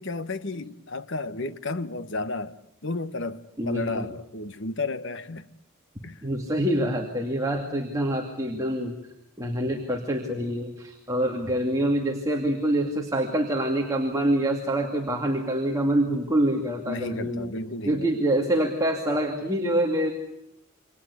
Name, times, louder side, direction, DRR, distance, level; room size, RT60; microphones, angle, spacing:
voice 1, 0.0-2.5 2.8-5.5 6.0-6.2 16.8-18.1, left 3 dB, 55° left, 1.2 m, -32 dB
voice 2, 3.6-4.1 6.2-9.0 9.4-17.5 17.9-20.1, right 1 dB, 15° right, 2.4 m, -26 dB
28.5 x 25.0 x 8.4 m
head